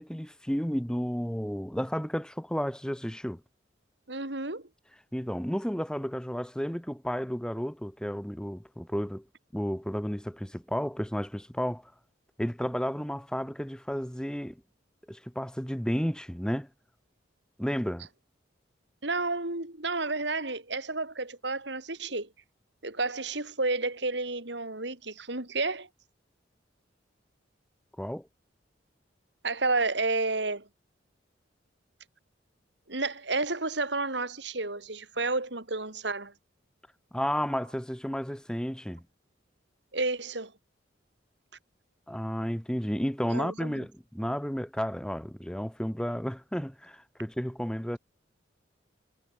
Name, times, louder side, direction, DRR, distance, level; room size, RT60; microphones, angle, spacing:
voice 1, 0.0-3.4 5.1-9.2 9.5-11.9 12.4-14.6 15.1-16.7 17.6-18.1 28.0-28.3 37.1-39.0 42.1-48.0, equal, 5° left, 1.3 m, -32 dB
voice 2, 4.1-4.7 19.0-22.3 22.8-25.9 29.4-30.6 32.9-36.3 39.9-40.5 43.3-43.8, right 3 dB, 70° right, 4.1 m, -31 dB
head